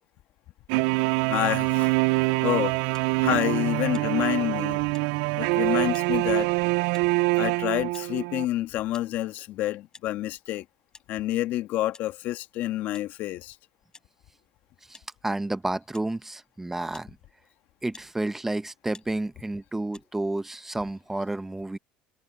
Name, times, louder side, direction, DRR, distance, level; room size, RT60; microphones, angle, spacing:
sound 1, 0.7-8.4, right 25 dB, 80° right, 0.4 m, -25 dB
voice 1, 1.3-2.0 2.4-2.8 3.2-4.8 5.4-6.5 7.4-10.6 11.1-13.6, left 15 dB, 65° left, 1.6 m, -28 dB
sound 2, 2.9-3.1 3.9-4.1 4.9-5.1 5.9-6.1 6.9-7.2 7.9-8.1 8.9-9.1 9.9-10.1 10.9-11.1 11.9-12.1 12.9-13.1 13.9-14.1 14.9-15.1 15.9-16.1 16.9-17.1 17.9-18.1 18.9-19.1 19.9-20.1, left 4 dB, 20° left, 4.5 m, -51 dB
voice 2, 14.9-17.2 17.8-21.8, right 2 dB, 10° right, 0.8 m, -31 dB
supercardioid pair, 110°, 3 cm